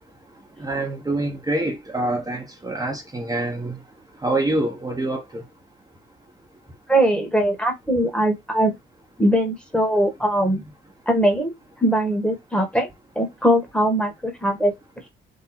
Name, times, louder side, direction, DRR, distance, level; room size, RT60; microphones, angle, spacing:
voice 1, 0.6-3.8 4.2-5.4, right 2 dB, 20° right, 1.1 m, -26 dB
voice 2, 6.9-8.7 9.2-10.6 11.1-11.5 11.8-12.9 13.1-14.7, right 1 dB, 5° left, 1.5 m, -21 dB
3.8 x 2.6 x 4.3 m
cardioid pair, 90°, 20 cm